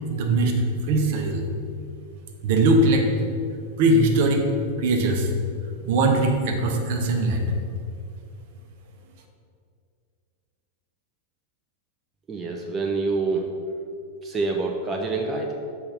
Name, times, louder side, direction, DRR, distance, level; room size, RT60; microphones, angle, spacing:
voice 1, 0.1-0.5 0.9-1.4 2.4-3.1 3.8-4.4 4.8-5.3 5.8-7.5, right 2 dB, 50° right, 4 dB, 0.9 m, -20 dB
voice 2, 12.3-13.5 14.2-15.5, right 3 dB, 20° right, 1 dB, 0.6 m, -26 dB
6.7 x 4.7 x 5.7 m, 2.4 s
figure-of-eight pair, 90°, 0 cm